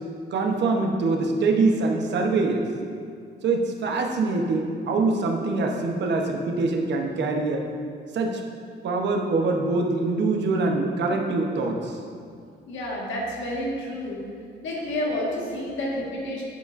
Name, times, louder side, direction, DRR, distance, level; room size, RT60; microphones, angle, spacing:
voice 1, 0.3-2.6 3.4-7.7 8.1-8.4 8.8-12.0, right 3 dB, 60° right, 2 dB, 0.9 m, -24 dB
voice 2, 12.7-14.2 14.6-16.5, left 1 dB, 75° left, -3 dB, 1.7 m, -29 dB
11.0 x 5.0 x 2.6 m, 2.3 s
cardioid pair, 90°, 20 cm